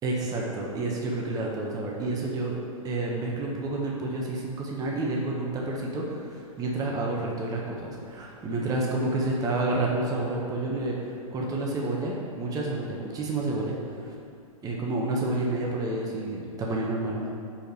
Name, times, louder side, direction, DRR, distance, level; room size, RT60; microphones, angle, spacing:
voice 1, 0.0-2.6 2.8-14.1 14.6-17.2, right 2 dB, 20° right, -2 dB, 1.0 m, -29 dB
5.1 x 5.0 x 5.2 m, 2.5 s
hypercardioid pair, 115°, 18 cm